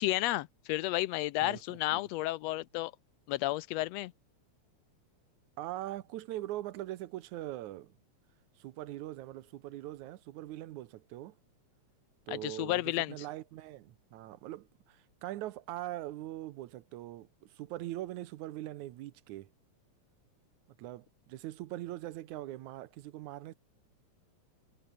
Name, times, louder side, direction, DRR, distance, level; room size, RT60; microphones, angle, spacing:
voice 1, 0.0-2.9 3.3-4.1 12.3-13.1, left 17 dB, 80° left, 1.6 m, -32 dB
voice 2, 5.6-8.0 8.6-11.4 12.3-19.5 20.8-23.5, right 15 dB, 80° right, 2.3 m, -42 dB
omnidirectional pair, 3.4 m